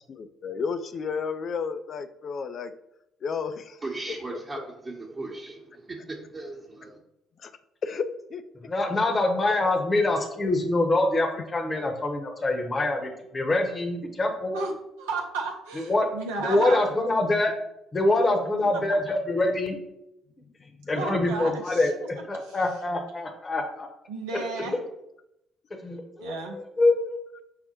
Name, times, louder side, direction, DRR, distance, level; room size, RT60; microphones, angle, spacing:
voice 1, 0.1-2.7 3.2-3.8 7.4-7.5 7.8-8.4 10.0-10.1 20.7-20.9, left 5 dB, 50° left, 10 dB, 0.4 m, -32 dB
voice 2, 3.8-7.0, right 2 dB, 35° right, -3 dB, 1.0 m, -37 dB
voice 3, 8.7-14.6 15.8-16.1 16.4-17.5 17.9-19.8 20.9-21.9 22.3-23.9 24.3-24.8 25.8-27.2, left 2 dB, 35° left, 3 dB, 0.9 m, -25 dB
voice 4, 14.5-16.9 18.6-18.8 21.0-22.1 22.4-22.6 24.1-24.8 26.2-26.6, right 3 dB, 80° right, 1 dB, 0.6 m, -33 dB
5.7 x 2.1 x 4.3 m, 0.84 s
hypercardioid pair, 50°, 0 cm